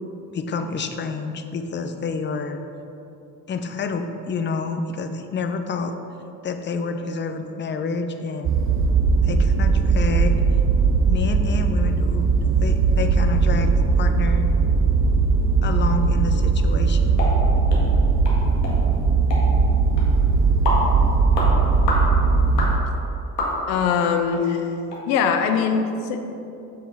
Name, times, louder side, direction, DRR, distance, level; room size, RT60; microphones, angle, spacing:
voice 1, 0.3-2.6 3.5-5.9 6.4-8.5 9.2-10.4 11.0-14.5 15.6-17.2, left 4 dB, 25° left, 7 dB, 0.6 m, -28 dB
sound 1, 8.4-22.8, right 4 dB, 30° right, 0.5 m, -19 dB
sound 2, 17.2-17.3 17.7-17.8 18.3-18.4 18.6-18.8 19.3-19.4 20.0-20.1 20.7-20.8 21.3-21.5 21.9-22.1 22.6-22.7 23.4-23.8 24.3-24.4 24.9-25.0 25.4-25.5, left 2 dB, 85° left, 1.7 m, -26 dB
voice 2, 23.7-24.7 25.1-26.3, left 6 dB, 65° left, 6 dB, 0.9 m, -22 dB
9.3 x 5.7 x 4.1 m, 2.9 s
hypercardioid pair, 65°, 48 cm